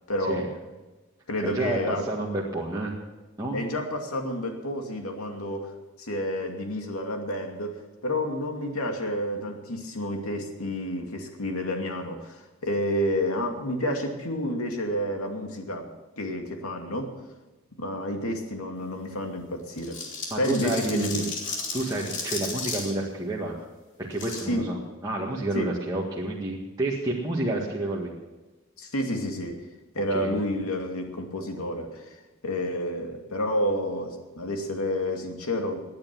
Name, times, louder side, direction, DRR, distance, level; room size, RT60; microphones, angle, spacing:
voice 1, 0.1-0.5 1.3-2.0 3.5-5.7 6.0-15.9 16.2-17.1 17.8-20.0 20.4-21.3 24.5-24.7 25.5-25.7 28.8-29.6 29.9-32.2 32.4-35.8, left 1 dB, 90° left, 3 dB, 2.5 m, -30 dB
voice 2, 1.4-2.9 3.4-3.6 20.3-21.2 21.7-23.6 24.0-28.1 30.1-30.3, right 2 dB, 15° right, -4 dB, 1.9 m, -29 dB
sound 1, 19.7-22.9 24.1-24.4, left 4 dB, 60° left, 3.2 m, -34 dB
19.0 x 9.5 x 6.2 m, 1.2 s
head